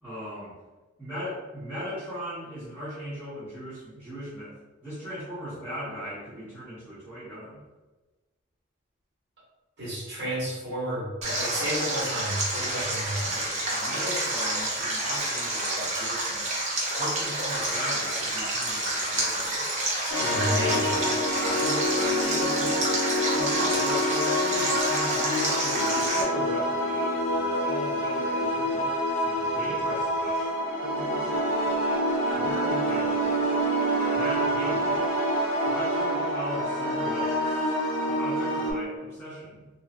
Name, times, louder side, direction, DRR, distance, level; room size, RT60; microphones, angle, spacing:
voice 1, 0.0-0.5 1.0-4.5 4.8-7.6 12.7-12.8 13.3-16.5 17.0-19.6 21.3-22.9 23.3-30.5 30.8-32.0 32.3-33.5 34.1-35.0 35.6-37.8 38.1-39.7, equal, 10° right, -17 dB, 1.0 m, -38 dB
voice 2, 9.8-13.4 20.2-21.2, right 1 dB, 55° right, -8 dB, 1.4 m, -31 dB
Stream, 11.2-26.2, right 1 dB, 35° right, 0.6 m, -29 dB
sound 1, 20.1-38.7, equal, 65° left, 0.6 m, -27 dB
2.7 x 2.4 x 2.4 m, 1.2 s
head